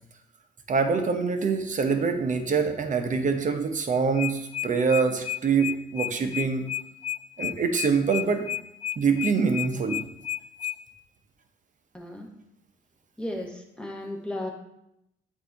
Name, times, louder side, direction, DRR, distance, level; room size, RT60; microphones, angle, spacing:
voice 1, 0.7-6.6 7.4-8.5 9.0-10.0, right 5 dB, 40° right, 6 dB, 0.8 m, -25 dB
sound 1, 3.9-10.8, left 11 dB, 35° left, 0.4 m, -31 dB
voice 2, 11.9-12.3 13.2-14.5, left 1 dB, 5° left, 1 dB, 1.2 m, -34 dB
8.2 x 2.7 x 4.5 m, 0.81 s
cardioid pair, 90°, 20 cm